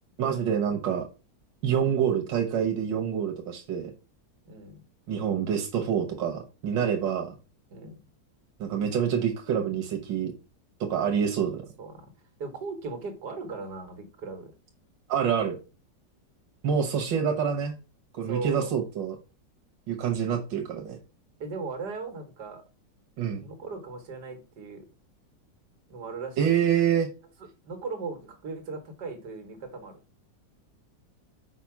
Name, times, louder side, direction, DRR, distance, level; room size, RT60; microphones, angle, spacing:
voice 1, 0.2-1.1 1.6-3.9 5.1-7.3 8.6-10.3 10.8-11.6 15.1-15.6 16.6-17.7 18.1-19.2 19.9-21.0 23.2-23.4 26.4-27.1, right 8 dB, 90° right, 1.7 m, -26 dB
voice 2, 4.4-4.8 7.7-8.0 11.8-12.1 12.4-14.5 18.2-18.7 21.4-22.6 23.4-24.9 25.9-26.6 27.6-30.0, right 4 dB, 70° right, 2.2 m, -38 dB
5.9 x 4.7 x 5.9 m
omnidirectional pair, 1.9 m